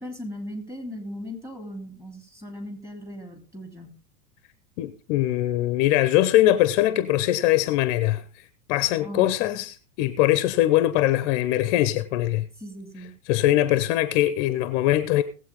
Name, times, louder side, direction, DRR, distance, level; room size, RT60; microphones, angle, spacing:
voice 1, 0.0-3.9 9.0-9.3 12.6-13.1, equal, 5° right, 3.2 m, -37 dB
voice 2, 4.8-8.2 8.7-12.5 13.3-15.2, left 14 dB, 50° left, 0.9 m, -22 dB
18.5 x 8.1 x 3.8 m
hypercardioid pair, 100°, 44 cm